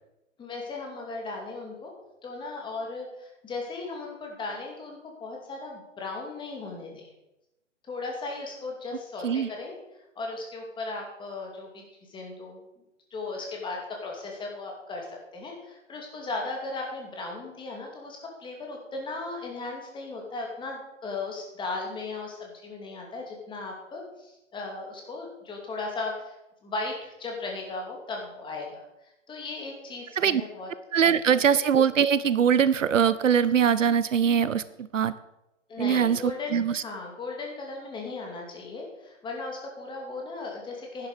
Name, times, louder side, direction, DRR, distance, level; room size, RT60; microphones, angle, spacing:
voice 1, 0.4-1.9 2.2-7.1 7.9-9.7 10.2-11.8 12.1-12.6 13.1-28.8 29.3-30.7 35.7-41.1, left 3 dB, 10° left, 0 dB, 2.4 m, -36 dB
voice 2, 30.9-35.2 35.8-36.8, right 7 dB, 80° right, 17 dB, 0.7 m, -22 dB
11.0 x 10.0 x 4.9 m, 0.93 s
figure-of-eight pair, 125°, 38 cm